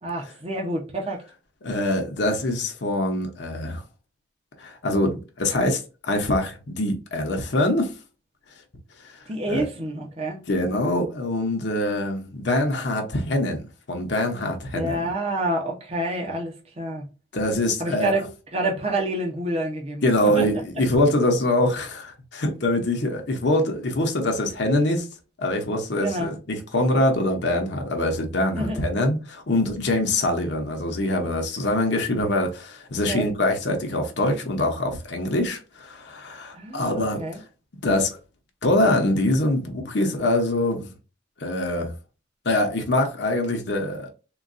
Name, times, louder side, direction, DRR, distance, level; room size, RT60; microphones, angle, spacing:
voice 1, 0.0-1.2 9.3-10.4 14.7-17.0 17.8-18.2 18.5-20.5 26.0-26.3 28.6-28.9 33.1-33.3 36.5-37.4, right 1 dB, 30° right, 0.6 m, -28 dB
voice 2, 1.6-3.8 4.6-7.9 9.0-9.1 9.5-9.7 10.5-15.1 17.3-18.1 20.0-25.1 25.4-37.2 37.8-38.2 38.6-40.9 41.4-41.9 42.4-44.1, left 1 dB, 60° left, 0.7 m, -24 dB
3.7 x 2.2 x 2.5 m
head